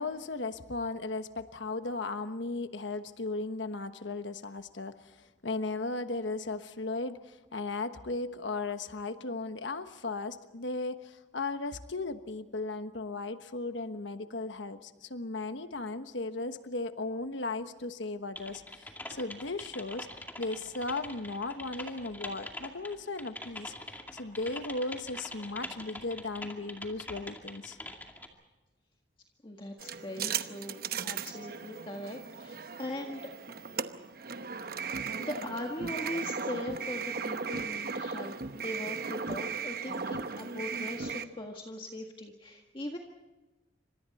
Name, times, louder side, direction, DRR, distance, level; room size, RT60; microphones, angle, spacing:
voice 1, 0.0-20.1 20.4-23.7 24.1-27.8, left 3 dB, 75° left, 9 dB, 1.2 m, -36 dB
Typing, 18.4-28.3, left 1 dB, 10° left, 2.3 m, -44 dB
voice 2, 29.4-33.3 35.2-43.0, left 1 dB, 25° left, 1 dB, 1.7 m, -40 dB
sound 1, 29.8-41.2, right 5 dB, 50° right, 0.9 m, -37 dB
28.5 x 26.0 x 4.2 m, 1.1 s
head